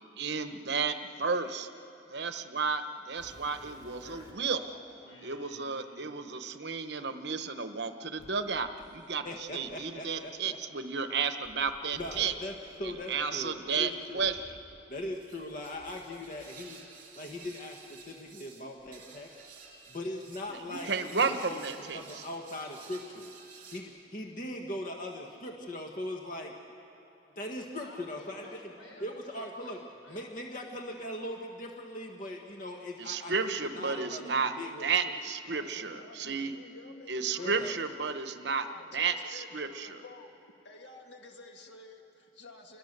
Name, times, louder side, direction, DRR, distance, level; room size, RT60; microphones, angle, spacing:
voice 1, 0.2-1.7 2.1-4.6 5.2-12.3 12.8-14.6 20.5-22.2 33.0-34.5 34.8-36.5 37.1-38.6 38.9-40.0, right 5 dB, 60° right, 9 dB, 1.0 m, -32 dB
incorrectly setting up a microphone, 3.2-4.6 5.4-5.5 8.2-10.3 11.4-15.2 15.4-16.5 17.3-17.4 18.0-18.1 18.8-19.9 20.1-20.7 22.0-22.1, right 1 dB, 20° right, 3.4 m, -57 dB
voice 2, 4.0-6.1 27.8-29.1 29.3-30.3, left 1 dB, 85° left, 0 dB, 5.4 m, -53 dB
voice 3, 9.2-10.6 11.9-14.3 14.9-16.8 17.1-19.3 19.9-21.6 21.9-23.3 23.7-26.6 27.3-28.4 29.0-29.8 30.1-33.3 33.7-34.9 37.4-37.7, left 1 dB, 45° left, 2 dB, 1.4 m, -40 dB
sound 1, 15.1-23.8, right 5 dB, 45° right, 3.3 m, -53 dB
voice 4, 35.5-38.0 38.5-40.3 40.6-42.8, left 2 dB, 65° left, 2 dB, 2.0 m, -51 dB
29.0 x 21.5 x 6.7 m, 3.0 s
head